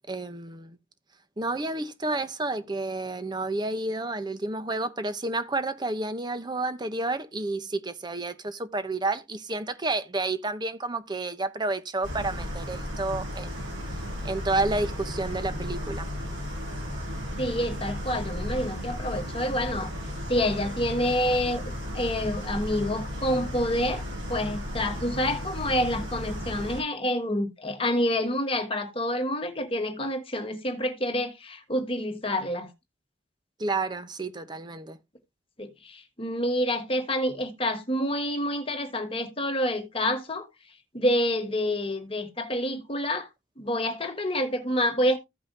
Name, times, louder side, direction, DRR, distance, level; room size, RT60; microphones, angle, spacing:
voice 1, 0.1-0.8 1.4-13.7 14.2-16.1 33.6-35.0, right 2 dB, 25° right, 0.8 m, -30 dB
sound 1, 12.0-26.8, left 1 dB, 80° right, 5.9 m, -34 dB
voice 2, 17.4-19.9 20.3-24.0 24.3-32.7 35.6-40.5 40.9-43.3 43.6-45.2, left 1 dB, 30° left, 1.5 m, -28 dB
15.0 x 5.5 x 2.6 m
head